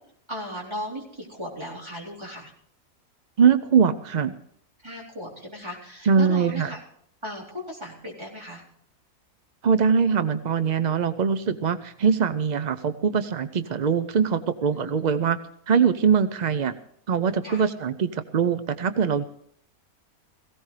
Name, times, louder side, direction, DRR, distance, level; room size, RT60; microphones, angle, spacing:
voice 1, 0.3-2.5 4.8-6.8 7.2-8.6 14.7-15.2 17.4-17.7, equal, 20° right, -4 dB, 4.0 m, -37 dB
voice 2, 3.4-4.3 6.1-6.7 9.6-15.4 15.7-16.7 17.1-19.2, right 6 dB, 60° right, 11 dB, 0.4 m, -22 dB
18.0 x 17.0 x 3.3 m, 0.66 s
omnidirectional pair, 1.5 m